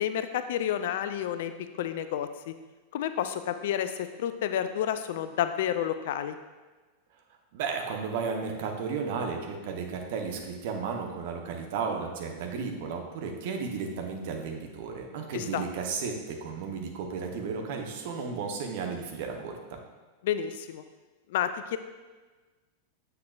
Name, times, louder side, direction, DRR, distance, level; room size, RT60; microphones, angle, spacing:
voice 1, 0.0-1.5 1.8-2.5 2.9-3.9 4.2-6.4 15.3-15.6 20.2-20.8 21.3-21.8, left 10 dB, 55° left, 10 dB, 0.3 m, -30 dB
voice 2, 7.5-19.8, right 5 dB, 50° right, 3 dB, 0.9 m, -34 dB
7.6 x 6.6 x 2.3 m, 1.3 s
figure-of-eight pair, 90°, 0 cm